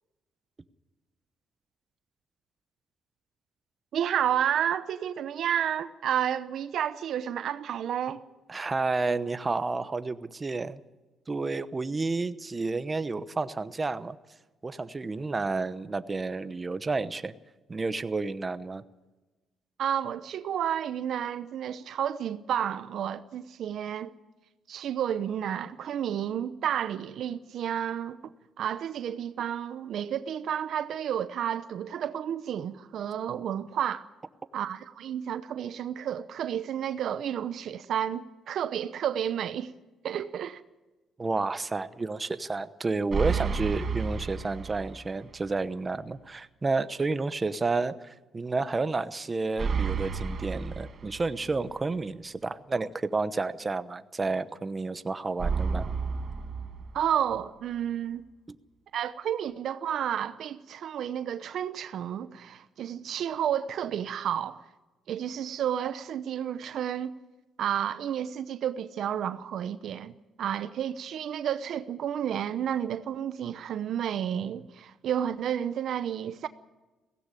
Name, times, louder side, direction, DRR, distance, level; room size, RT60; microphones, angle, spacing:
voice 1, 3.9-8.2 19.8-24.1 24.7-28.2 28.6-34.1 34.5-39.7 40.0-40.6 56.9-58.3 58.9-64.6 65.1-67.1 67.6-70.1 70.4-76.5, right 9 dB, 70° right, 0.8 m, -31 dB
voice 2, 8.5-10.8 11.3-14.2 14.6-17.3 17.7-18.8 41.2-55.8 58.5-58.6, right 3 dB, 25° right, 0.9 m, -30 dB
sound 1, 43.1-45.1 45.5-45.6 49.6-51.6 55.4-57.4, right 5 dB, 50° right, 1.7 m, -31 dB
17.0 x 16.0 x 9.9 m
cardioid pair, 90°, 0 cm